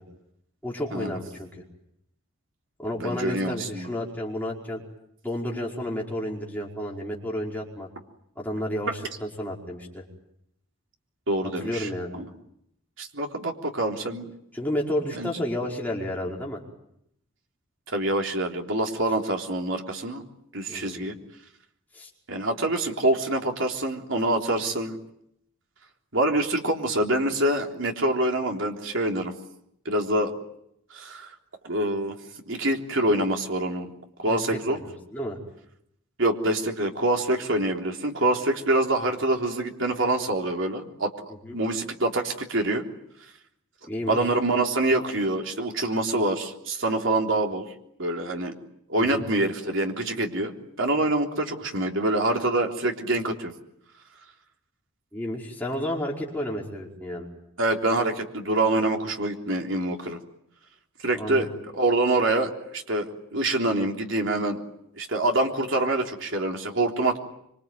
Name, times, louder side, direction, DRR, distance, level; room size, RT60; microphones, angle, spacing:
voice 1, 0.6-1.5 2.8-4.8 5.2-7.9 8.4-10.0 11.6-12.2 14.5-16.6 20.7-21.1 21.9-22.1 34.3-34.4 34.7-35.4 41.4-41.6 43.9-44.2 49.0-49.3 55.1-57.3 61.1-61.5, left 1 dB, 10° left, -2 dB, 5.2 m, -31 dB
voice 2, 3.0-3.9 11.3-12.3 13.0-14.2 15.1-15.3 17.9-20.2 20.5-21.1 22.3-25.0 26.1-29.3 29.9-30.3 30.9-31.3 31.6-32.2 32.5-33.9 34.2-34.8 36.2-41.1 41.5-42.8 44.1-47.6 48.0-48.5 48.9-53.5 57.6-60.2 61.0-61.5 61.7-64.6 65.0-67.2, right 2 dB, 65° right, 2 dB, 3.6 m, -25 dB
26.0 x 24.5 x 9.1 m, 0.76 s
head